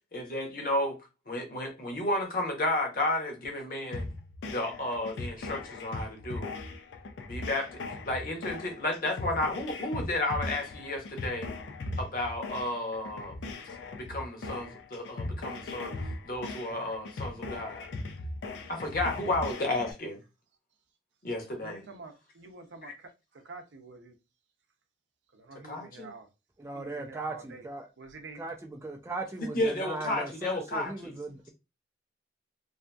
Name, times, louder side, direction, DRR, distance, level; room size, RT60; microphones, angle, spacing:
voice 1, 0.1-1.0 1.3-4.0 4.4-6.5 7.3-11.5 12.0-13.4 14.0-15.9 16.2-17.9 18.7-20.2 21.2-21.8 22.8-22.9 25.6-26.1 29.4-31.1, left 1 dB, 50° left, 0.8 m, -32 dB
sound 1, 3.9-19.9, left 2 dB, 80° left, 0.4 m, -39 dB
voice 2, 21.6-22.9 23.4-24.1 25.3-26.3 26.7-27.7 28.0-28.4, right 3 dB, 85° right, 0.5 m, -47 dB
voice 3, 26.6-27.9 28.4-31.5, right 3 dB, 15° right, 0.3 m, -38 dB
2.7 x 2.5 x 2.2 m
head